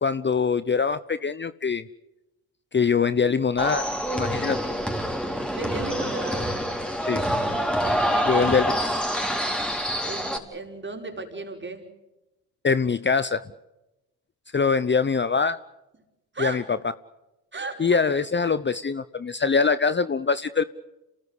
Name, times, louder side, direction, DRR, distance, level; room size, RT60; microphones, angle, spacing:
voice 1, 0.0-1.8 2.7-3.9 4.1-4.6 7.1-7.2 8.3-8.8 12.6-13.4 14.5-15.6 16.4-16.8 17.8-20.6, left 5 dB, 30° left, 15 dB, 0.8 m, -23 dB
sound 1, 3.6-10.4, equal, ahead, 4.4 m, -26 dB
voice 2, 5.2-6.5 8.1-8.5 10.0-11.9 16.3-16.6 17.5-18.0, right 3 dB, 30° right, 4 dB, 5.4 m, -35 dB
27.0 x 19.0 x 8.2 m, 0.98 s
supercardioid pair, 60°, 39 cm